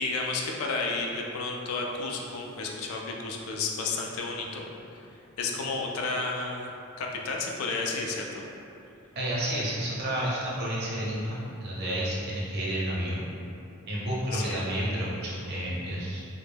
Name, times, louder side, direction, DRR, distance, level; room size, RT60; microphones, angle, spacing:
voice 1, 0.0-4.7 5.4-6.7 7.0-8.4 14.3-14.6, left 3 dB, 80° left, 0 dB, 0.3 m, -32 dB
voice 2, 9.2-13.2 13.9-16.2, right 1 dB, 50° right, -6 dB, 0.6 m, -30 dB
2.2 x 2.0 x 3.2 m, 2.7 s
head